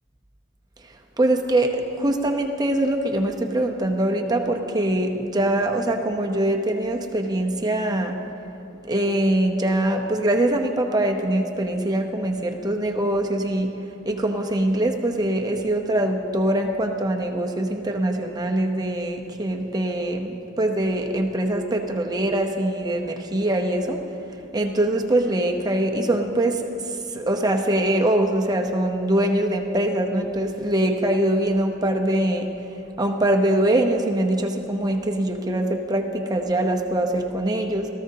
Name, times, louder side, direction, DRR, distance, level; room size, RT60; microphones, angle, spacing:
voice 1, 1.2-8.2 8.8-13.7 14.0-24.0 24.5-32.5 33.0-37.9, right 1 dB, 20° right, 2 dB, 0.8 m, -23 dB
17.5 x 14.0 x 2.8 m, 2.8 s
head